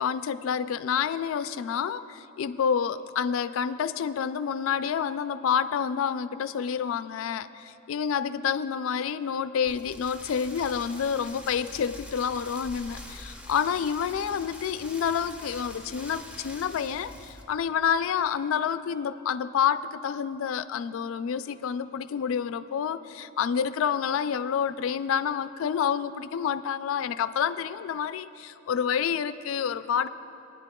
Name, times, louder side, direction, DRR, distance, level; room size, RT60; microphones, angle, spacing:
voice 1, 0.0-30.1, left 7 dB, 70° left, 14 dB, 0.3 m, -28 dB
Rain, 9.7-17.4, left 1 dB, 5° right, 0.6 m, -44 dB
21.5 x 10.0 x 2.3 m, 2.8 s
head